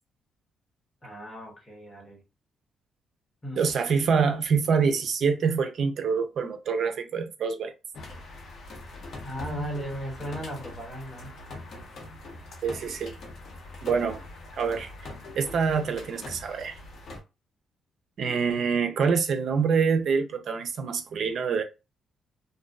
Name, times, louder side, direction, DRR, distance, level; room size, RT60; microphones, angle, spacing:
voice 1, 1.0-2.2 3.4-3.7 9.2-11.4, equal, 25° left, 1.2 m, -36 dB
voice 2, 3.6-7.7 12.6-13.1 13.8-14.2 14.5-14.9 15.3-16.7 18.2-21.6, right 5 dB, 60° right, 0.6 m, -25 dB
sound 1, 7.9-17.2, left 2 dB, 60° left, 0.9 m, -42 dB
2.5 x 2.2 x 2.3 m
cardioid pair, 90°, 0 cm